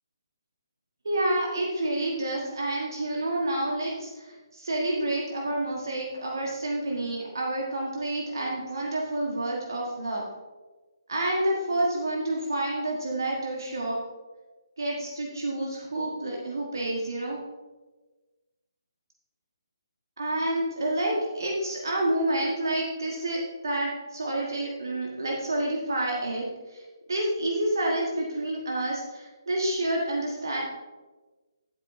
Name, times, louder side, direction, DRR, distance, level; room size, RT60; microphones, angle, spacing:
voice 1, 1.0-10.2 11.1-14.0 14.8-17.4 20.2-30.6, right 1 dB, 60° right, -2 dB, 1.5 m, -29 dB
11.0 x 8.5 x 2.7 m, 1.2 s
figure-of-eight pair, 140°, 2 cm